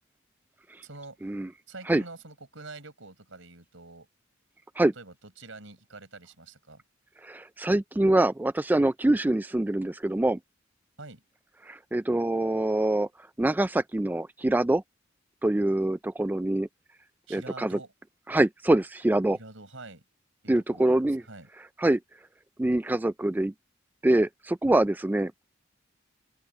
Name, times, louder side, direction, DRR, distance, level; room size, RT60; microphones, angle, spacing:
voice 1, 0.8-1.2 1.7-4.1 4.9-6.8 11.0-11.2 17.3-17.9 19.3-20.0 20.4-21.5, right 3 dB, 75° right, 6.4 m, -46 dB
voice 2, 7.2-10.4 11.6-13.1 13.4-14.8 15.4-16.7 17.3-17.8 18.3-19.4 20.5-21.2 21.8-22.0 22.6-23.5 24.0-25.3, right 1 dB, 10° right, 0.3 m, -24 dB
open air
head